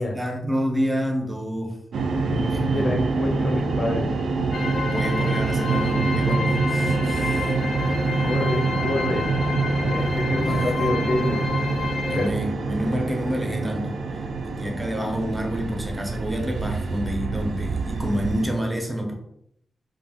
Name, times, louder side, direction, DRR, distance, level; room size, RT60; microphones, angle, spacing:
voice 1, 0.1-1.8 2.5-2.9 4.8-7.5 10.4-10.6 12.1-19.1, equal, 10° right, 2 dB, 0.4 m, -28 dB
sound 1, 1.9-18.5, right 3 dB, 75° right, 0.3 m, -26 dB
voice 2, 2.3-4.3 8.2-9.3 9.8-11.5 12.1-12.3, left 1 dB, 35° left, 2 dB, 0.5 m, -27 dB
sound 2, 4.5-12.3, left 4 dB, 90° left, 0.6 m, -30 dB
2.4 x 2.1 x 3.3 m, 0.75 s
wide cardioid pair, 150°, 0 cm